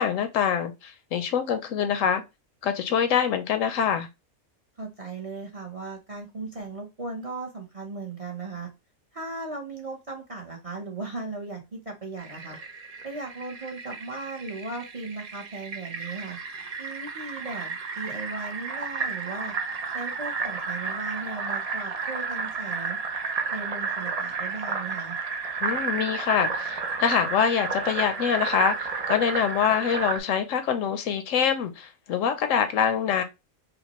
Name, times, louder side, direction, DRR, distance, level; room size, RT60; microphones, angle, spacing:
voice 1, 0.0-2.2 2.6-4.1 25.6-33.2, left 8 dB, 70° left, 0.9 m, -25 dB
voice 2, 4.8-8.7 9.1-12.6 13.0-16.4 16.8-19.5 19.9-23.0 23.5-25.2, right 3 dB, 30° right, 0.7 m, -37 dB
Fill (with liquid), 12.2-30.2, right 4 dB, 75° right, 0.3 m, -32 dB
5.1 x 2.2 x 3.0 m
omnidirectional pair, 1.5 m